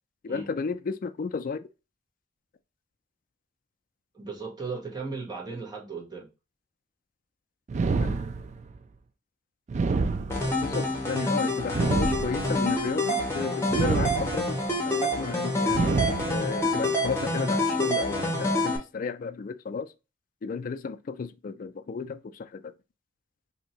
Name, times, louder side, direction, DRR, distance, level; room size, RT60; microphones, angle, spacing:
voice 1, 0.2-1.7 8.0-8.2 10.6-14.6 14.9-15.8 16.3-19.9 20.4-22.7, left 5 dB, 45° left, 0.3 m, -33 dB
voice 2, 4.1-6.3 10.4-10.9, right 4 dB, 25° right, 1.0 m, -37 dB
sound 1, 7.7-8.8 9.7-10.8 11.7-12.7 13.7-14.7 15.7-16.7, right 4 dB, 40° right, 0.3 m, -28 dB
sound 2, 10.3-18.8, left 1 dB, 15° left, 0.9 m, -27 dB
2.8 x 2.6 x 4.1 m
head